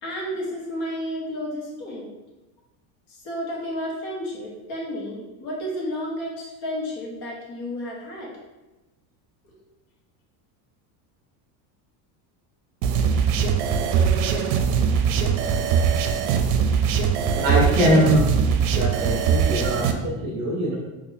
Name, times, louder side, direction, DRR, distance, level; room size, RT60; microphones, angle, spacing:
voice 1, 0.0-2.1 3.1-8.3 9.4-9.5, equal, 60° left, -3 dB, 1.3 m, -32 dB
sound 1, 12.8-19.9, right 6 dB, 80° right, 0.5 m, -21 dB
voice 2, 17.4-18.3 18.7-20.8, equal, 30° right, -4 dB, 0.7 m, -22 dB
3.9 x 2.8 x 2.6 m, 1.1 s
cardioid pair, 160°, 48 cm